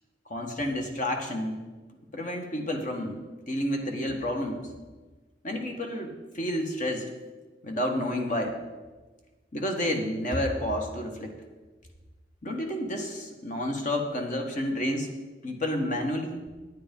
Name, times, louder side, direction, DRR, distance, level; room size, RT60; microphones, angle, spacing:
voice 1, 0.3-1.6 2.1-4.7 5.4-7.1 7.6-8.6 9.5-11.4 12.4-15.1 15.4-16.4, left 1 dB, 45° left, 3 dB, 1.5 m, -30 dB
10.0 x 9.2 x 5.4 m, 1.3 s
head